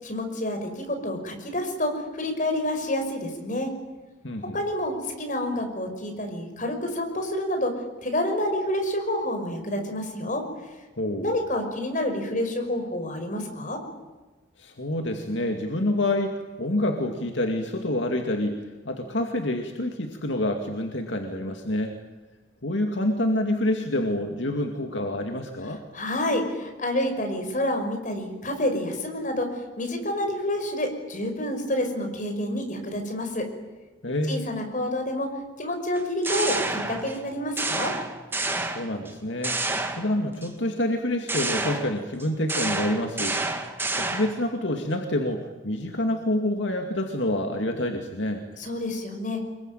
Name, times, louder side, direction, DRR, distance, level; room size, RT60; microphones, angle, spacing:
voice 1, 0.0-3.7 4.5-7.7 8.0-10.4 11.2-13.8 25.9-33.5 34.3-35.3 35.6-37.9 48.6-49.4, left 1 dB, 40° left, 5 dB, 5.6 m, -28 dB
voice 2, 4.2-4.6 11.0-11.4 14.6-21.9 22.6-25.8 34.0-34.5 38.6-39.6 40.0-48.4, left 1 dB, 70° left, 4 dB, 2.3 m, -27 dB
sound 1, 35.9-37.2 37.6-39.1 39.4-40.5 41.3-44.5, right 2 dB, 10° right, 2.1 m, -29 dB
25.5 x 22.5 x 9.2 m, 1.2 s
head